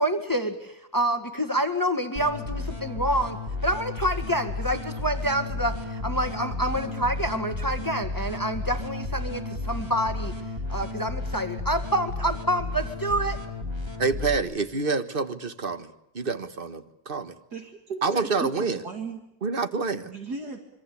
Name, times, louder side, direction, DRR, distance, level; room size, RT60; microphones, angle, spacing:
voice 1, 0.0-10.3 10.7-13.4, right 1 dB, 10° left, 1.9 m, -27 dB
sound 1, 2.2-14.4, left 2 dB, 15° right, 3.1 m, -33 dB
voice 2, 14.0-17.4 18.0-18.8 19.4-20.1, right 4 dB, 30° right, 1.6 m, -27 dB
voice 3, 17.5-19.2 20.0-20.6, right 4 dB, 60° right, 2.6 m, -36 dB
26.0 x 25.0 x 8.5 m
omnidirectional pair, 1.9 m